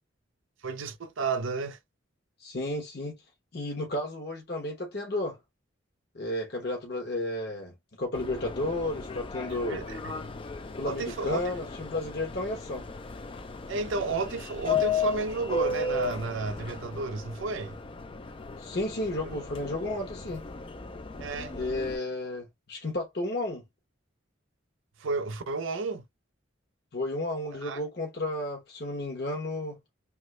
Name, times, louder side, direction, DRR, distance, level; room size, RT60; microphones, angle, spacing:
voice 1, 0.6-1.8 9.5-10.1 10.8-11.4 13.7-17.8 19.2-19.4 21.2-21.5 25.0-26.0 27.6-27.8, right 3 dB, 70° right, 0.5 m, -32 dB
voice 2, 2.4-3.2 3.5-5.4 6.1-9.8 10.8-12.8 18.6-20.4 21.5-23.6 26.9-29.8, left 1 dB, 50° left, 0.9 m, -32 dB
Subway metro underground, 8.1-22.0, left 4 dB, 25° left, 0.3 m, -35 dB
3.0 x 2.4 x 3.1 m
head